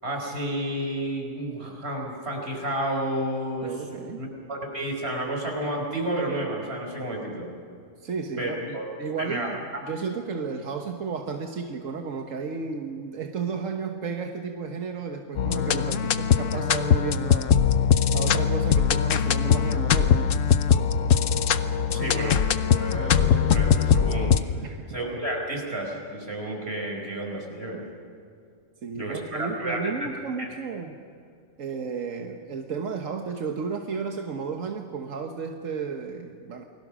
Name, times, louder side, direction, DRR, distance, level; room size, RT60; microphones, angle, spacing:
voice 1, 0.0-3.7 4.2-7.5 8.4-9.5 21.9-24.4 24.9-27.8 28.9-30.1 30.4-30.5, right 1 dB, 55° right, 1 dB, 5.3 m, -31 dB
voice 2, 3.6-4.2 8.0-17.6 18.1-20.3 24.6-24.9 28.8-31.0 31.6-36.6, right 5 dB, 90° right, 3 dB, 1.6 m, -33 dB
sound 1, 15.4-24.4, left 8 dB, 80° left, 1.2 m, -21 dB
29.5 x 20.5 x 6.3 m, 2.3 s
omnidirectional pair, 1.3 m